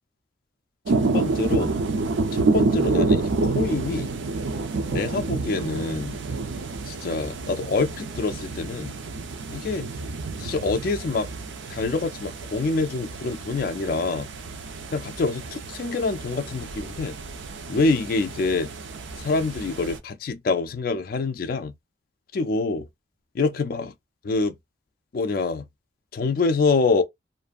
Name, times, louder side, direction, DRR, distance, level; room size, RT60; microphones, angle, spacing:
sound 1, 0.9-20.0, right 3 dB, 75° right, 0.5 m, -28 dB
voice 1, 1.1-1.7 2.3-4.1 4.9-6.2 6.9-8.9 9.5-9.9 10.4-11.3 11.7-14.3 14.9-17.1 17.7-18.7 19.2-21.7 22.3-22.9 23.3-23.9 24.2-24.5 25.1-25.6 26.1-27.0, left 3 dB, 50° left, 0.3 m, -26 dB
2.5 x 2.4 x 2.4 m
head